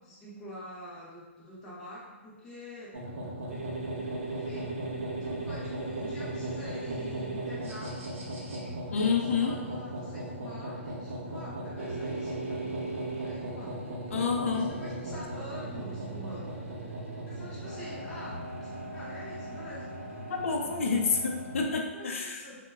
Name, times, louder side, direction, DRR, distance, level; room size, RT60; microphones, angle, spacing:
voice 1, 0.0-3.0 4.3-4.7 5.2-8.0 8.4-12.6 13.1-13.8 14.5-16.9 17.2-19.9 21.9-22.6, equal, 10° left, -8 dB, 0.5 m, -46 dB
sound 1, 2.9-21.8, right 1 dB, 75° right, 0.7 m, -37 dB
voice 2, 8.9-9.6 14.1-14.8 20.3-22.4, left 5 dB, 75° left, 2 dB, 0.4 m, -28 dB
2.1 x 2.1 x 3.3 m, 1.3 s
hypercardioid pair, 170°, 7 cm